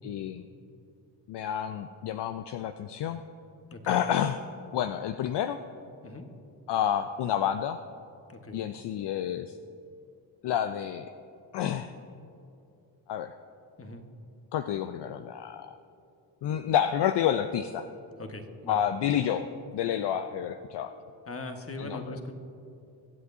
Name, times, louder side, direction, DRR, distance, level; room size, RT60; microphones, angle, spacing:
voice 1, 0.0-0.4 1.3-3.2 3.9-4.4 4.7-5.6 6.7-7.8 8.5-9.5 10.4-11.1 11.5-11.9 13.1-13.4 14.5-15.7 16.4-17.9 18.7-19.5 19.7-20.9 21.8-22.0, left 10 dB, 60° left, 9 dB, 0.6 m, -29 dB
voice 2, 8.3-8.6 13.8-14.0 18.2-18.8 21.3-22.3, left 2 dB, 30° left, 5 dB, 1.4 m, -40 dB
23.5 x 8.2 x 2.7 m, 2.8 s
supercardioid pair, 55°, 47 cm